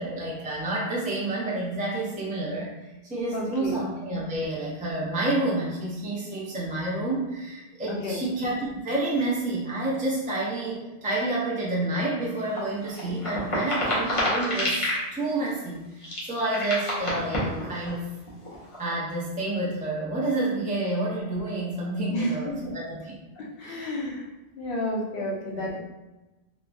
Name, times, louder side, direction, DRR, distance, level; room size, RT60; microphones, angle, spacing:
voice 1, 0.0-2.7 3.0-16.0 16.3-18.1 18.8-23.1 23.6-23.9 25.1-25.3 25.5-25.7, right 2 dB, 10° right, -6 dB, 0.4 m, -29 dB
voice 2, 3.3-3.8 7.9-8.2 22.1-22.7 23.4-24.2 24.6-25.8, left 1 dB, 65° left, -3 dB, 0.9 m, -31 dB
sound 1, 12.3-15.0 15.4-15.5 16.0-17.9 18.3-18.9, left 1 dB, 35° left, 0.7 m, -29 dB
3.0 x 2.2 x 2.4 m, 1.1 s
omnidirectional pair, 1.1 m